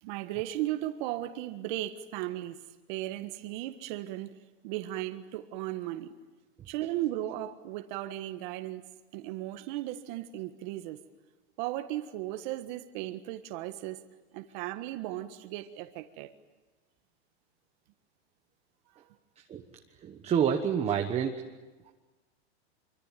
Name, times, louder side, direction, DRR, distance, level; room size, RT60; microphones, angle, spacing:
voice 1, 0.0-2.6 2.9-4.4 4.6-6.1 6.7-8.9 9.1-11.0 11.6-14.0 14.3-16.3 18.9-19.2, right 14 dB, 45° right, 8 dB, 1.6 m, -36 dB
voice 2, 20.0-21.4, right 8 dB, 20° right, 4 dB, 1.2 m, -28 dB
26.0 x 24.5 x 9.2 m, 1.2 s
supercardioid pair, 150°, 34 cm